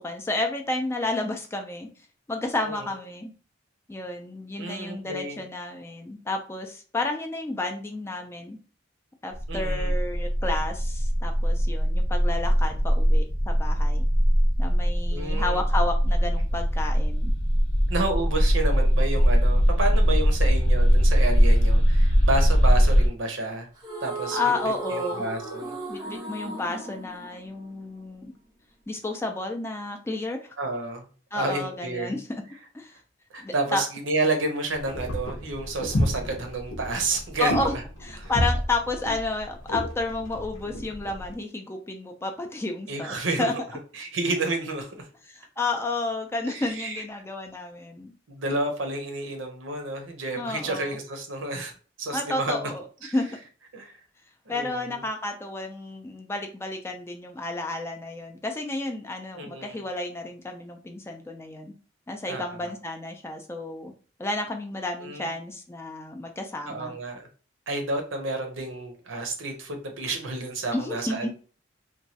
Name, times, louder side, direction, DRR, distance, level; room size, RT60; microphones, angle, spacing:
voice 1, 0.0-1.9 2.3-3.3 3.9-8.6 9.2-14.1 14.6-17.3 24.3-25.2 25.9-28.3 28.9-30.5 31.3-32.4 32.7-32.9 33.4-33.8 37.4-37.7 38.0-43.5 45.3-48.1 50.4-51.0 52.1-52.8 53.1-53.3 54.5-61.7 62.1-63.9 64.2-66.9 70.7-71.3, left 2 dB, 15° left, 3 dB, 0.3 m, -31 dB
voice 2, 4.6-5.4 9.5-9.9 15.1-15.6 17.9-23.7 24.0-24.4 24.8-25.7 30.6-31.1 31.3-32.2 33.3-37.8 38.2-38.3 42.9-43.5 43.9-45.0 46.5-47.0 48.3-52.7 53.0-53.1 53.7-53.9 54.5-55.0 59.3-59.8 62.3-62.6 65.0-65.3 66.7-67.3 67.7-71.3, right 2 dB, 70° right, 5 dB, 0.7 m, -30 dB
sound 1, 9.3-23.1, equal, 30° left, 0.8 m, -21 dB
sound 2, 23.8-28.2, right 2 dB, 20° right, 0.6 m, -36 dB
sound 3, 34.7-41.3, equal, 90° left, 0.8 m, -31 dB
3.0 x 2.3 x 2.7 m, 0.39 s
head